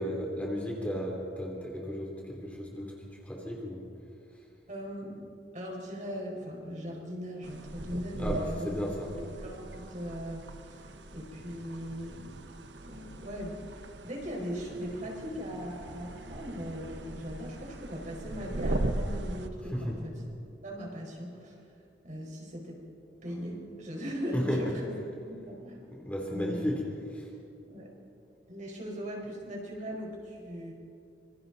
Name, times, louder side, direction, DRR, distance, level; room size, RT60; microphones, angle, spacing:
voice 1, 0.0-2.9 3.2-3.8 8.2-9.1 19.7-20.0 24.3-24.6 25.9-26.8 27.2-27.3, equal, 10° left, -2 dB, 3.2 m, -34 dB
voice 2, 4.7-8.7 9.2-12.3 12.8-20.3 20.6-21.6 22.0-22.8 23.2-24.9 25.3-25.9 26.3-26.7 27.7-27.9 28.5-30.7, equal, 45° right, -1 dB, 5.0 m, -39 dB
sound 1, 7.4-19.5, right 1 dB, 75° right, 1.2 m, -39 dB
26.5 x 25.0 x 4.1 m, 2.6 s
head